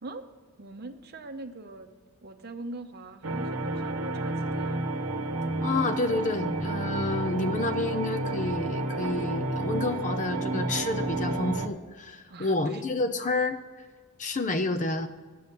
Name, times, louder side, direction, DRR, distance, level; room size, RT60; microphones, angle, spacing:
voice 1, 0.6-1.9 2.2-4.9 12.3-12.8, right 2 dB, 45° right, 7 dB, 0.8 m, -42 dB
sound 1, 3.2-11.7, right 2 dB, 85° right, 0.9 m, -30 dB
voice 2, 5.6-13.6 14.2-15.1, left 2 dB, 35° left, 9 dB, 0.6 m, -29 dB
9.4 x 7.0 x 6.9 m, 1.4 s
head